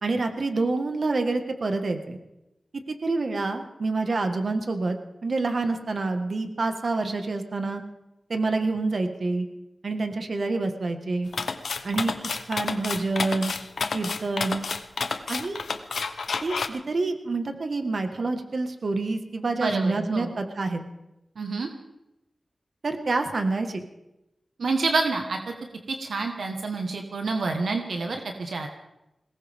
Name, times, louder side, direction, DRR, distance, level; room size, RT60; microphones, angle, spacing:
voice 1, 0.0-2.2 2.9-7.8 8.3-9.5 9.8-11.3 11.8-13.5 13.9-14.7 15.3-15.6 16.4-20.8 22.8-23.8, right 3 dB, 65° right, 6 dB, 1.6 m, -27 dB
sound 1, 11.3-16.7, left 5 dB, 85° left, 0.9 m, -30 dB
voice 2, 19.6-20.3 21.4-21.7 24.6-25.5 26.0-28.7, right 3 dB, 90° right, 4 dB, 1.4 m, -28 dB
21.5 x 18.5 x 3.6 m, 0.92 s
wide cardioid pair, 65°, 0 cm